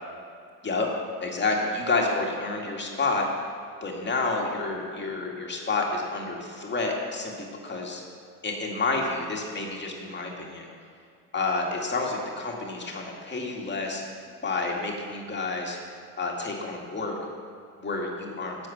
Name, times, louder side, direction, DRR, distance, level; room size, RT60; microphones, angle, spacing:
voice 1, 1.2-3.3 3.8-8.0 8.4-10.7 11.3-14.0 14.4-15.8 16.2-17.2 17.8-18.6, left 3 dB, 25° left, 0 dB, 2.2 m, -29 dB
11.5 x 7.6 x 6.0 m, 2.3 s
supercardioid pair, 90°, 47 cm